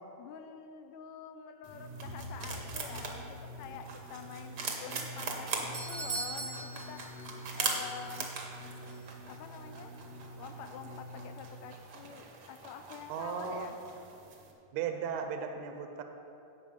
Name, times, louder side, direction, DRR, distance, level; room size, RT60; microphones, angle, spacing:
voice 1, 0.2-7.3 7.6-8.3 9.3-10.0 10.4-13.8, left 7 dB, 80° left, 7 dB, 1.7 m, -47 dB
sound 1, 1.6-11.4, equal, 60° left, 2.3 m, -46 dB
sound 2, 1.6-14.5, right 4 dB, 60° right, 1.0 m, -42 dB
Doorbell, 5.4-7.8 8.0-8.1 8.9-9.0, right 3 dB, 40° right, 0.7 m, -40 dB
voice 2, 13.1-13.7 14.7-16.0, right 7 dB, 75° right, 5 dB, 1.9 m, -36 dB
16.5 x 5.8 x 5.2 m, 2.8 s
omnidirectional pair, 3.4 m